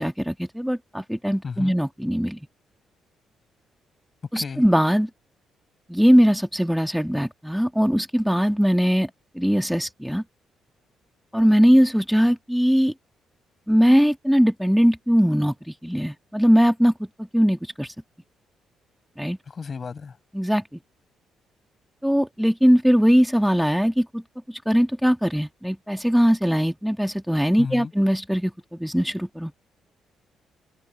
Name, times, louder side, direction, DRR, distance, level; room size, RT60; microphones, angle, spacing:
voice 1, 0.0-2.4 4.3-5.1 5.9-9.1 9.3-10.2 11.3-12.9 13.7-16.9 17.3-17.9 19.2-19.4 20.3-20.6 22.0-24.2 24.5-28.5 28.8-29.5, equal, ahead, 1.5 m, -20 dB
voice 2, 1.4-1.8 4.3-4.6 19.5-20.2 27.6-27.9, left 5 dB, 40° left, 7.8 m, -33 dB
open air
cardioid pair, 90°, 0 cm